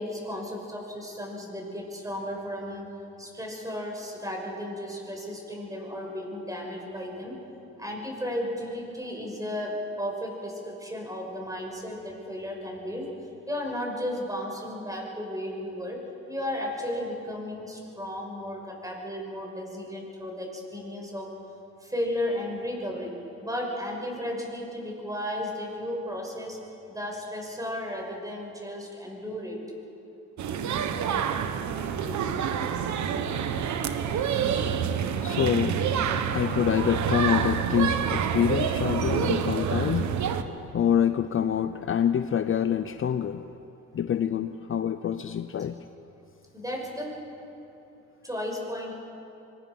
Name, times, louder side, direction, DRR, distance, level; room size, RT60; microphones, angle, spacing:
voice 1, 0.0-2.9 3.2-7.4 7.8-13.1 13.5-16.0 16.3-21.3 21.8-23.1 23.4-26.6 26.9-29.6 46.5-47.2 48.2-49.1, left 1 dB, 10° right, 0 dB, 6.0 m, -34 dB
sound 1, 30.4-40.4, right 7 dB, 70° right, 1.3 m, -27 dB
voice 2, 34.1-40.3 40.7-43.5 43.9-45.8, left 9 dB, 45° left, 11 dB, 0.7 m, -27 dB
25.0 x 19.5 x 6.2 m, 2.9 s
cardioid pair, 90°, 30 cm